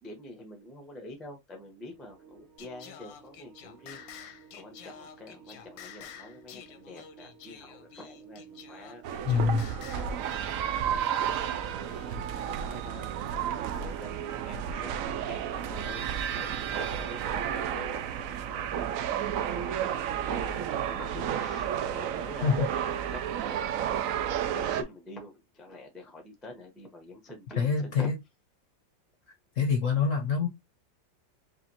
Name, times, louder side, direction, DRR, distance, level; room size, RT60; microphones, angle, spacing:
voice 1, 0.0-24.1 24.5-28.1, left 1 dB, ahead, 0.4 m, -47 dB
sound 1, 1.8-11.8, right 7 dB, 40° right, 1.8 m, -55 dB
Singing, 2.6-10.2, left 8 dB, 90° left, 1.4 m, -49 dB
sound 2, 9.0-24.8, right 9 dB, 90° right, 0.7 m, -32 dB
voice 2, 9.3-9.7 22.4-22.7 27.6-28.2 29.6-30.5, left 5 dB, 60° left, 0.8 m, -25 dB
4.9 x 2.6 x 2.8 m
omnidirectional pair, 2.0 m